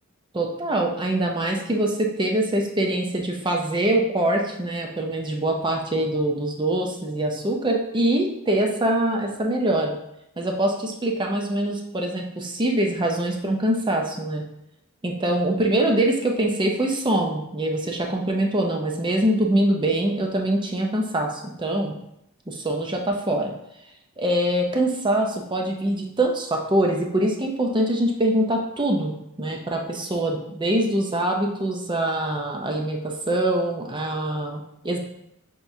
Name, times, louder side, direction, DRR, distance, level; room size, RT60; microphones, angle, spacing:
voice 1, 0.3-10.0 10.4-14.4 15.0-21.9 22.5-23.5 24.2-35.0, right 1 dB, 20° right, 1 dB, 0.6 m, -24 dB
6.8 x 3.0 x 2.6 m, 0.80 s
head